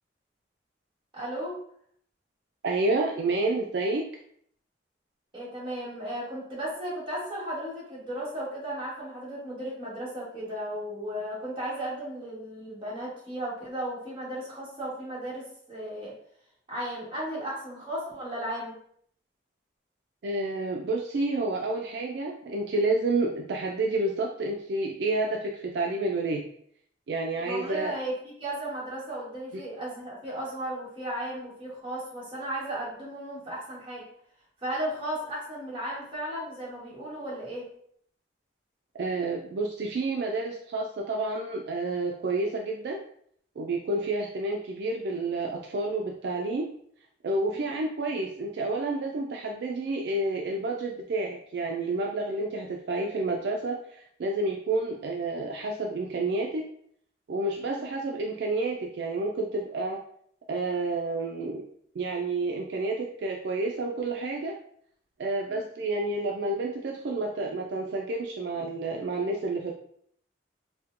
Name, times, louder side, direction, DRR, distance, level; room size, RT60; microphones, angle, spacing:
voice 1, 1.1-1.6 5.3-16.1 16.7-18.8 27.4-34.0 34.6-37.7 47.5-47.7 57.6-57.9 65.5-65.6, right 1 dB, 30° right, -7 dB, 1.3 m, -35 dB
voice 2, 2.6-4.1 20.2-26.4 27.1-27.9 38.9-43.0 43.6-46.7 47.2-56.6 57.3-60.0 60.5-61.6 62.0-64.5 65.2-69.7, right 2 dB, 65° right, 0 dB, 0.3 m, -29 dB
4.3 x 2.1 x 2.5 m, 0.64 s
head